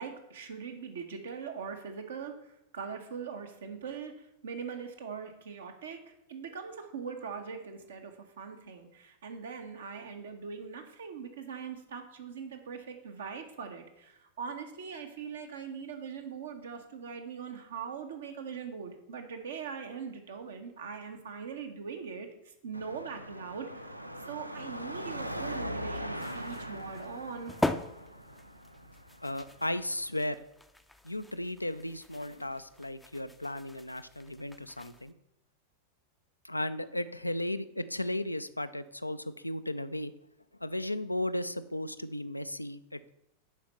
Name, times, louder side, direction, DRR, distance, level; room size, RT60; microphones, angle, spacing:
voice 1, 0.0-4.1 4.4-23.7 24.3-27.5, right 6 dB, 65° right, 5 dB, 1.3 m, -41 dB
Car passing by / Traffic noise roadway noise / Engine, 22.7-30.1, equal, 90° right, 0.5 m, -41 dB
sound 1, 26.2-35.1, left 2 dB, 5° left, 0.5 m, -41 dB
voice 2, 29.2-30.4 31.0-35.1 36.4-40.1 40.6-43.1, left 1 dB, 85° left, 12 dB, 0.4 m, -35 dB
7.3 x 5.1 x 6.9 m, 0.85 s
figure-of-eight pair, 90°, 0 cm